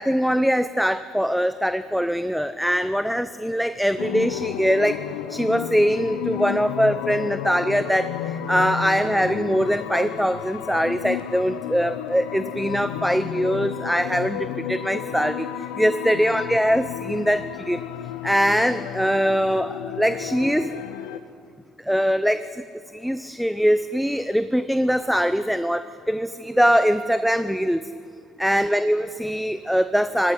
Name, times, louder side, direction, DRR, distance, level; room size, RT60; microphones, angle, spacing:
voice 1, 0.0-5.0 5.3-17.8 18.2-20.7 21.9-22.4 22.9-27.8 28.4-30.3, equal, ahead, 12 dB, 0.7 m, -22 dB
sound 1, 4.0-21.2, left 11 dB, 85° left, 1.0 m, -32 dB
19.5 x 16.5 x 9.9 m, 2.3 s
supercardioid pair, 75°, 0 cm